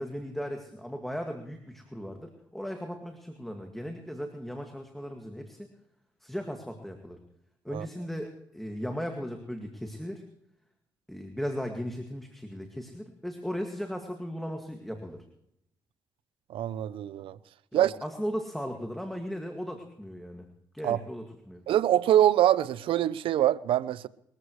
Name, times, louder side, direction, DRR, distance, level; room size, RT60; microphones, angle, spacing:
voice 1, 0.0-5.7 6.2-7.2 7.6-10.2 11.1-15.2 17.7-20.5 20.7-21.6, equal, ahead, 2.1 m, -37 dB
voice 2, 16.5-17.4 17.7-17.9 20.8-21.0 21.7-24.1, right 12 dB, 80° right, 0.6 m, -24 dB
22.0 x 14.5 x 3.2 m
cardioid pair, 75°, 9 cm